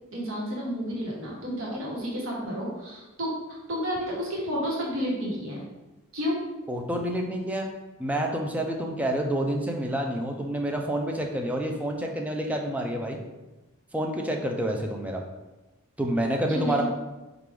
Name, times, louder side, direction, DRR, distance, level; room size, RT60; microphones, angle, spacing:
voice 1, 0.1-5.6 6.1-6.4 16.5-16.8, equal, 65° right, -4 dB, 1.2 m, -31 dB
voice 2, 6.7-7.7 8.0-13.2 13.9-15.2 16.0-16.8, right 1 dB, 5° right, 1 dB, 0.4 m, -28 dB
4.6 x 2.5 x 3.4 m, 1.1 s
head